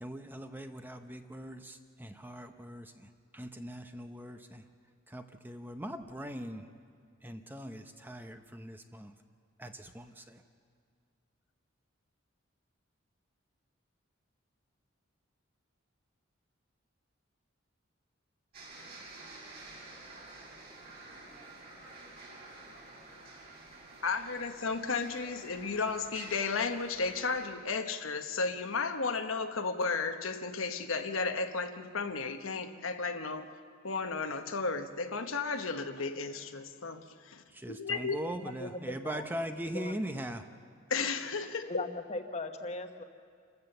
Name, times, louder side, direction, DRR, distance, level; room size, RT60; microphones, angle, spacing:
voice 1, 0.0-4.7 5.1-6.7 7.2-9.1 9.6-10.4 37.5-40.5, equal, 10° right, 7 dB, 0.7 m, -41 dB
sound 1, 18.5-27.5, right 2 dB, 50° right, 6.6 m, -50 dB
voice 2, 24.0-33.5 33.8-38.2 40.9-41.9, left 4 dB, 80° left, 6 dB, 1.1 m, -34 dB
voice 3, 38.4-39.4 39.6-40.2 41.4-43.0, left 2 dB, 35° left, 6 dB, 1.2 m, -40 dB
28.0 x 15.0 x 6.8 m, 2.2 s
head